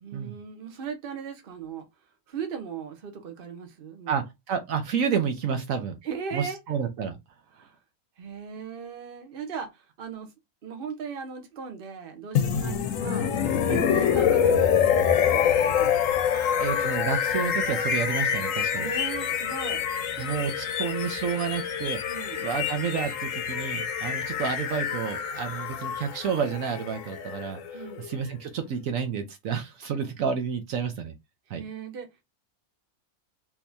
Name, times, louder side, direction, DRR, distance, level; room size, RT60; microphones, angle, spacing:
voice 1, 0.0-1.9 2.3-4.2 6.0-6.6 7.5-7.7 8.2-10.3 10.6-13.3 13.7-16.4 18.8-19.9 20.2-20.3 22.0-22.4 27.7-28.1 31.5-32.1, right 6 dB, 45° right, 1.0 m, -38 dB
voice 2, 4.1-6.0 6.3-7.1 12.5-12.7 13.7-13.8 16.6-18.9 20.2-31.1 31.5-31.6, right 7 dB, 70° right, 1.1 m, -30 dB
sound 1, 12.3-28.2, left 8 dB, 70° left, 1.0 m, -26 dB
3.8 x 2.9 x 2.6 m
omnidirectional pair, 1.5 m